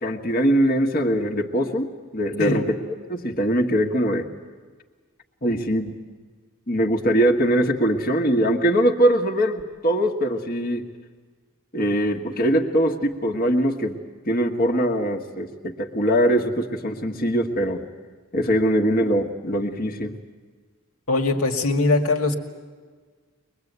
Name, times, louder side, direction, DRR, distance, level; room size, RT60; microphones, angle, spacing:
voice 1, 0.0-2.7 3.1-4.3 5.4-6.0 6.7-10.8 11.7-14.0 14.3-17.8 18.3-20.1, equal, 45° left, 2 dB, 1.5 m, -22 dB
voice 2, 2.4-2.7 21.1-22.4, left 2 dB, 80° left, 4 dB, 2.1 m, -21 dB
23.0 x 22.0 x 8.1 m, 1.5 s
head